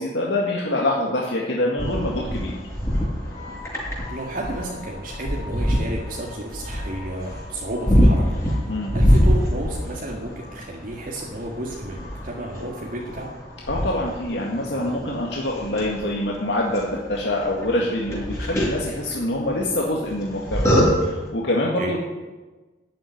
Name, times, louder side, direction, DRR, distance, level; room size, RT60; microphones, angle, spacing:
voice 1, 0.0-2.6 8.7-8.9 13.7-20.7 21.0-22.0, left 1 dB, 80° left, -2 dB, 2.0 m, -25 dB
sound 1, 1.8-21.3, equal, 15° left, 5.6 m, -25 dB
voice 2, 4.1-8.2 8.6-13.3 21.8-21.9, right 1 dB, 50° right, -2 dB, 1.9 m, -32 dB
13.5 x 7.5 x 10.0 m, 1.2 s
head